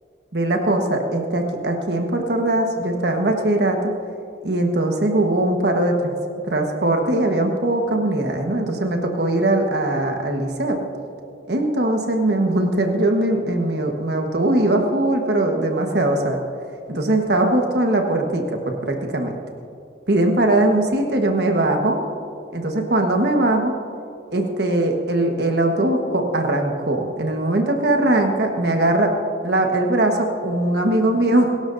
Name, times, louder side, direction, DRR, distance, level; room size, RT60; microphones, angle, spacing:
voice 1, 0.3-3.9 4.4-6.1 6.5-10.8 11.5-16.4 16.9-19.3 20.1-22.0 22.5-23.7 24.3-29.1 29.4-31.5, right 1 dB, 65° right, 3 dB, 1.3 m, -20 dB
22.5 x 12.0 x 2.6 m, 2.4 s
head